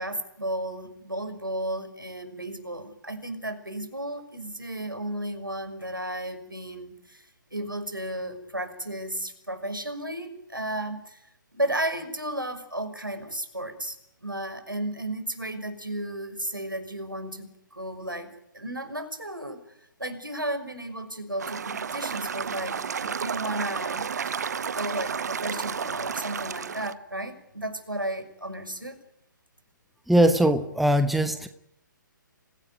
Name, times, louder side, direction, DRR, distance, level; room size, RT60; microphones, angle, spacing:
voice 1, 0.0-7.3 7.5-11.2 11.5-14.0 14.2-19.6 20.0-24.4 24.7-29.0, right 1 dB, 90° right, 7 dB, 6.1 m, -34 dB
sound 1, 21.4-26.9, right 6 dB, 55° right, 0.9 m, -32 dB
voice 2, 30.1-31.5, right 1 dB, ahead, 9 dB, 1.1 m, -21 dB
25.5 x 17.5 x 9.5 m, 0.80 s
figure-of-eight pair, 135°, 11 cm